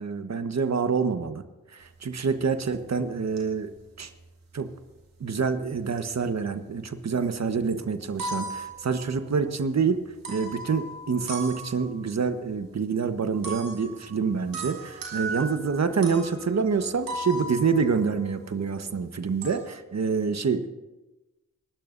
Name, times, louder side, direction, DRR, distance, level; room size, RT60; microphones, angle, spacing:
voice 1, 0.0-1.4 1.7-3.7 4.0-4.1 4.5-4.7 5.2-10.0 10.3-20.7, right 5 dB, 50° right, 9 dB, 1.3 m, -27 dB
sound 1, 1.8-1.9 2.4-2.8 3.4-3.9 4.1-4.8 5.7-6.2 6.5-7.2 7.6-7.7 7.9-9.5 10.2-12.2 13.4-18.7 19.0-19.6, right 2 dB, 75° right, 3.3 m, -38 dB
27.0 x 12.0 x 2.7 m, 1.1 s
supercardioid pair, 45°, 35 cm